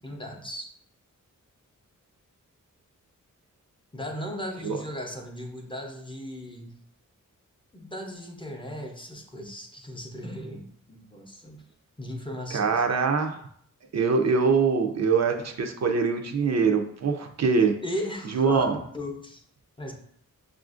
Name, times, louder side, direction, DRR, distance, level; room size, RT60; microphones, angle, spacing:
voice 1, 0.0-0.7 3.9-6.7 7.7-11.6 12.0-12.8 17.8-19.4 19.8-19.9, equal, 15° left, 1 dB, 0.5 m, -37 dB
voice 2, 12.5-13.4 13.9-17.8 18.3-18.8, right 5 dB, 55° right, 4 dB, 0.4 m, -23 dB
6.6 x 2.4 x 2.4 m, 0.66 s
wide cardioid pair, 155°, 32 cm